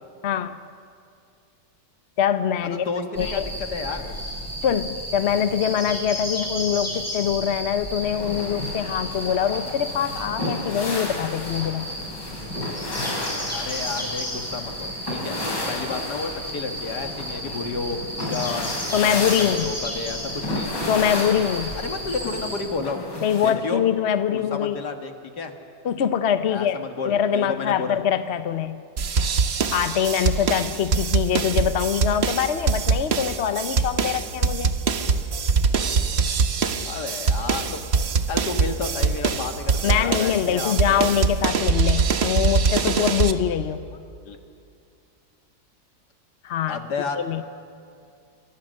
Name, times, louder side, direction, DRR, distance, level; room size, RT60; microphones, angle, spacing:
voice 1, 0.2-0.6 2.2-2.8 3.2-3.5 4.6-11.9 18.9-19.7 20.9-21.7 23.2-24.8 25.8-26.8 27.0-28.8 29.7-34.7 39.8-43.8 46.4-46.8 47.2-47.4, left 8 dB, 50° left, 11 dB, 0.8 m, -23 dB
voice 2, 2.7-3.4 3.7-4.2 13.5-18.0 18.3-18.7 19.0-20.8 21.8-23.0 23.4-23.8 24.3-25.5 26.5-28.0 36.9-37.8 38.3-41.1 44.3-44.4 46.7-47.4, left 4 dB, 70° left, 5 dB, 2.2 m, -31 dB
sound 1, 3.1-22.6, equal, 10° left, 6.7 m, -33 dB
sound 2, 8.0-23.5, left 1 dB, 85° left, 4.4 m, -33 dB
sound 3, 29.0-43.3, right 5 dB, 45° right, 1.1 m, -23 dB
28.0 x 24.5 x 6.5 m, 2.4 s
omnidirectional pair, 1.8 m